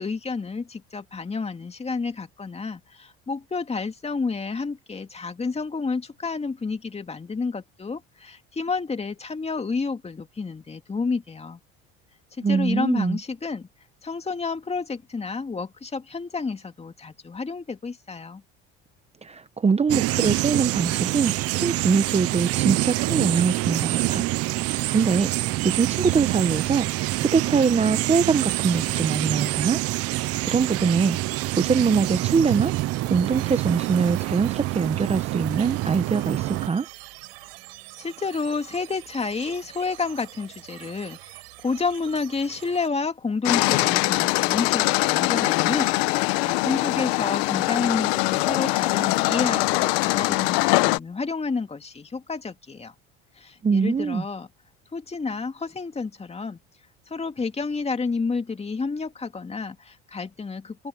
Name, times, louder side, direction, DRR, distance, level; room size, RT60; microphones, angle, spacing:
voice 1, 0.0-11.6 12.4-13.7 14.0-18.4 38.0-52.9 53.4-54.5 54.9-56.6 57.1-60.9, left 4 dB, 20° left, 2.5 m, -30 dB
voice 2, 12.4-13.2 19.2-24.3 24.9-25.3 25.6-26.9 27.2-29.8 30.5-32.7 33.1-36.9 53.6-54.2, right 5 dB, 20° right, 1.0 m, -23 dB
sound 1, 19.9-36.7, right 18 dB, 55° right, 0.5 m, -26 dB
sound 2, 31.4-42.9, right 26 dB, 90° right, 5.9 m, -45 dB
sound 3, 43.4-51.0, left 23 dB, 85° left, 1.0 m, -22 dB
supercardioid pair, 95°, 29 cm